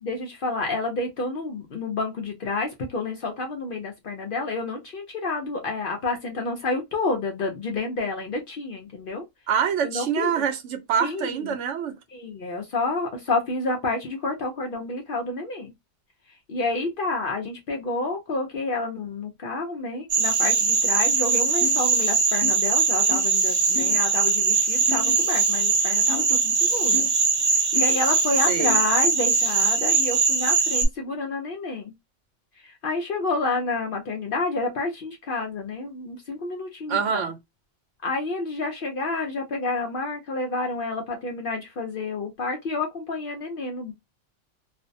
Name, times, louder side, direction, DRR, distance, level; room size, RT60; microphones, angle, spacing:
voice 1, 0.0-9.2 9.8-10.4 11.0-11.6 12.1-15.7 16.5-27.1 27.5-31.9 32.6-37.2 38.0-43.9, left 3 dB, 55° left, 0.6 m, -29 dB
voice 2, 9.5-11.9 28.5-28.8 36.9-37.4, right 7 dB, 80° right, 0.9 m, -25 dB
sound 1, 20.1-30.8, right 4 dB, 55° right, 1.0 m, -21 dB
sound 2, 21.6-21.8 22.4-22.5 23.1-23.2 23.7-24.0 24.9-25.1 26.1-26.2 26.9-27.1 27.8-27.9 28.6-28.8, left 7 dB, 75° left, 1.0 m, -32 dB
2.5 x 2.1 x 2.5 m
omnidirectional pair, 1.2 m